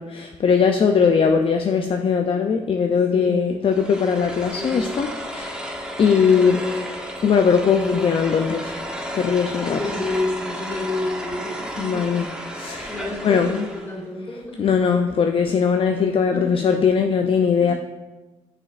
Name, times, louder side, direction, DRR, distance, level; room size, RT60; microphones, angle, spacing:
voice 1, 0.0-5.5 6.0-6.6 7.2-8.7 9.1-9.8 11.8-12.3 12.5-12.9 13.2-13.6 14.6-17.7, left 6 dB, 45° left, 5 dB, 0.4 m, -20 dB
voice 2, 3.1-3.6 4.6-4.9 6.2-6.7 9.8-12.0 12.9-14.7 16.3-16.7 17.6-17.7, left 2 dB, 20° left, -4 dB, 2.0 m, -29 dB
sound 1, 3.7-14.0, equal, 5° right, 0.9 m, -33 dB
9.4 x 5.0 x 2.5 m, 1.2 s
cardioid pair, 90°, 13 cm